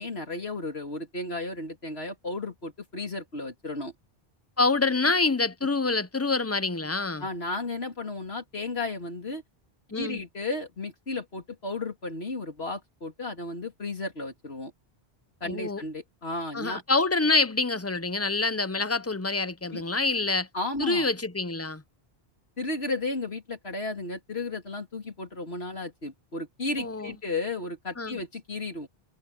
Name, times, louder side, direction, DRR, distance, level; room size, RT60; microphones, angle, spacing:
voice 1, 0.0-3.9 7.2-9.4 9.9-14.7 15.4-16.8 19.7-19.8 20.5-21.1 22.6-28.9, left 2 dB, 90° left, 3.6 m, -34 dB
voice 2, 4.6-7.3 9.9-10.2 15.4-15.8 16.5-20.5 20.8-21.8 26.8-27.1 28.0-28.2, left 3 dB, 15° left, 0.7 m, -26 dB
omnidirectional pair, 1.0 m